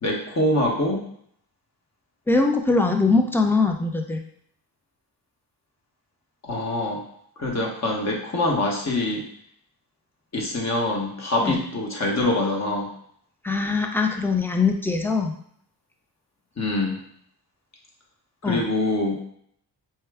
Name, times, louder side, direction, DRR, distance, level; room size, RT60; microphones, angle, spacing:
voice 1, 0.0-1.0 6.4-7.0 7.4-9.2 10.3-12.9 16.6-17.0 18.4-19.2, left 1 dB, 40° left, 0 dB, 1.1 m, -24 dB
voice 2, 2.3-4.2 11.4-11.6 13.4-15.3 18.4-18.6, left 3 dB, 5° left, 3 dB, 0.5 m, -22 dB
4.5 x 2.2 x 3.4 m, 0.66 s
cardioid pair, 80°, 42 cm